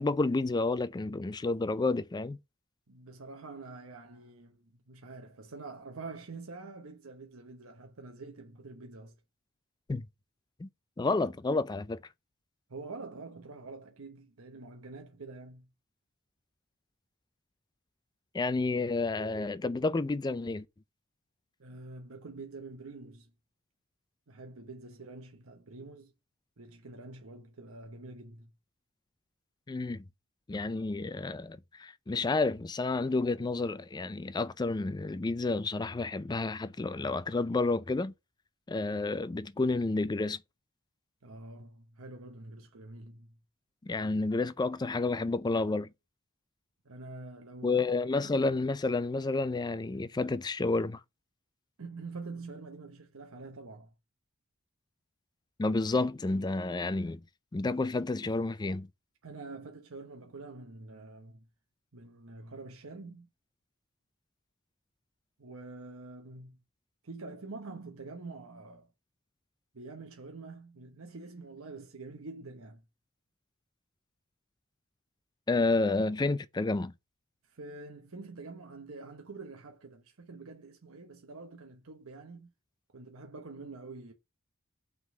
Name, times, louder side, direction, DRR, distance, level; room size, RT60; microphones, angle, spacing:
voice 1, 0.0-2.4 9.9-10.0 10.6-10.7 11.0-12.0 18.3-20.6 29.7-30.0 30.5-38.1 38.7-40.4 43.8-45.9 47.6-51.0 55.6-57.2 57.5-58.9 75.5-76.9, left 3 dB, 20° left, 0.4 m, -30 dB
voice 2, 2.9-9.1 12.7-15.7 21.6-23.3 24.3-26.1 26.6-28.5 41.2-43.4 46.8-47.9 48.2-48.4 51.8-53.9 59.2-61.5 61.9-63.3 65.4-66.6 67.0-68.9 69.7-72.8 75.6-76.1 77.5-82.5 82.9-84.1, right 3 dB, 80° right, 0.9 m, -46 dB
5.9 x 3.8 x 5.2 m
head